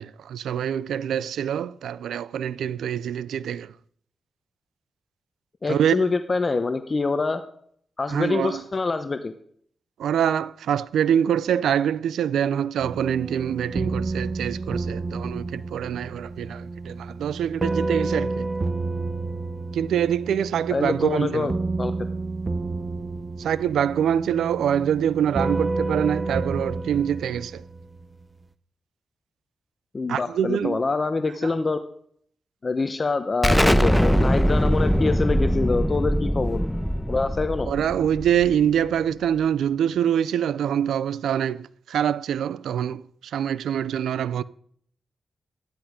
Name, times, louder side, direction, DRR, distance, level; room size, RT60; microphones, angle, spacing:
voice 1, 0.0-3.7 5.7-6.1 8.1-8.6 10.0-18.5 19.7-21.5 23.4-27.6 30.1-30.8 31.4-31.5 37.7-44.4, right 9 dB, 90° right, 0.4 m, -25 dB
voice 2, 5.6-7.4 8.0-9.3 20.7-21.5 21.8-21.9 29.9-31.8 32.6-36.6 37.1-37.7, left 3 dB, 45° left, 1.0 m, -25 dB
sound 1, 12.8-28.2, right 3 dB, 40° right, 0.8 m, -30 dB
Explosion, 33.4-38.9, equal, 5° left, 1.1 m, -22 dB
13.0 x 10.5 x 5.1 m
supercardioid pair, 50°, 0 cm